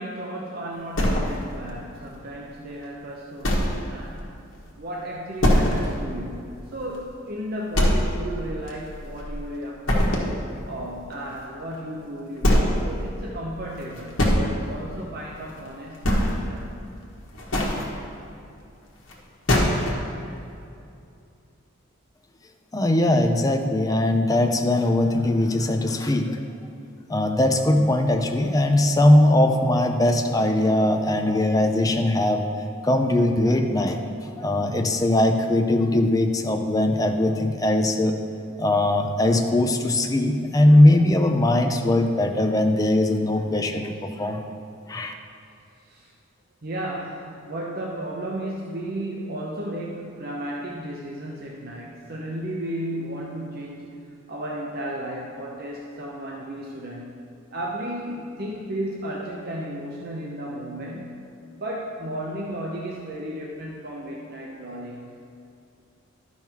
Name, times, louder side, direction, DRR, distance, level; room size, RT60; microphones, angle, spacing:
voice 1, 0.0-4.4 4.8-10.3 10.7-16.7 45.8-46.1 46.6-53.9 54.3-57.1 57.5-61.2 61.6-65.1, right 1 dB, 50° right, -2 dB, 0.8 m, -34 dB
sound 1, 0.9-1.7 2.1-2.2 2.7-2.8 3.4-3.9 4.2-4.3 4.7-4.8 5.4-6.0 6.3-6.4 6.9-7.0 7.7-8.3 8.7-9.4 9.9-10.4 11.7-11.8 12.4-12.8 13.8-14.4 15.4-15.6 15.9-16.6 17.2-17.9 19.1-19.2 19.5-20.0, equal, 70° left, 1.5 m, -21 dB
voice 2, 22.7-26.4 27.1-32.5 32.8-38.2 38.6-44.4 44.9-45.1, left 1 dB, 15° left, 5 dB, 0.5 m, -20 dB
12.0 x 5.6 x 4.5 m, 2.6 s
head